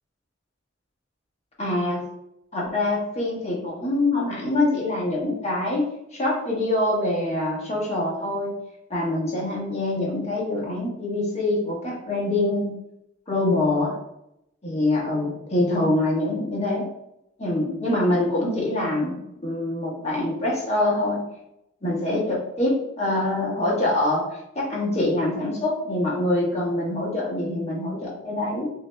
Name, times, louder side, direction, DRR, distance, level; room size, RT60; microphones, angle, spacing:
voice 1, 1.6-2.0 2.5-8.5 8.9-12.7 13.3-14.0 14.6-16.9 17.4-21.2 21.8-28.7, left 2 dB, 35° left, -4 dB, 1.3 m, -25 dB
6.4 x 2.8 x 2.2 m, 0.83 s
head